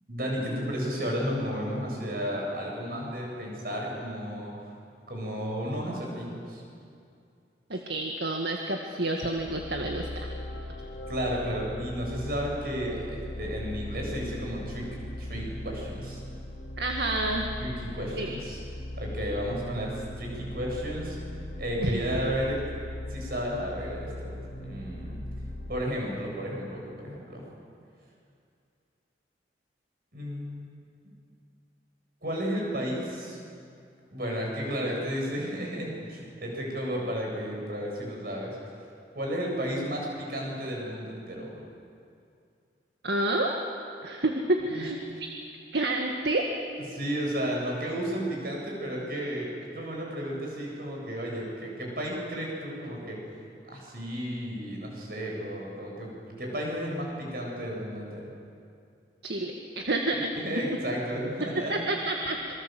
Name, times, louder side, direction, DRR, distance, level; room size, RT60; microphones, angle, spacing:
voice 1, 0.1-4.5 5.1-6.6 11.1-14.9 15.2-16.2 17.6-18.6 19.0-21.2 21.6-22.6 23.1-25.2 25.7-27.4 30.1-30.7 32.2-33.4 34.1-38.6 39.1-41.6 44.7-44.8 46.9-53.2 53.6-58.3 60.1-61.8, equal, 55° right, -1 dB, 7.9 m, -33 dB
voice 2, 7.7-10.3 16.8-17.5 18.2-18.3 21.8-22.0 43.0-43.6 44.0-45.0 45.7-46.5 59.2-60.3 61.7-62.5, right 2 dB, 70° right, 2 dB, 1.9 m, -29 dB
sound 1, 9.4-25.8, left 1 dB, 85° left, 3.8 m, -39 dB
27.0 x 23.5 x 7.8 m, 2.4 s
head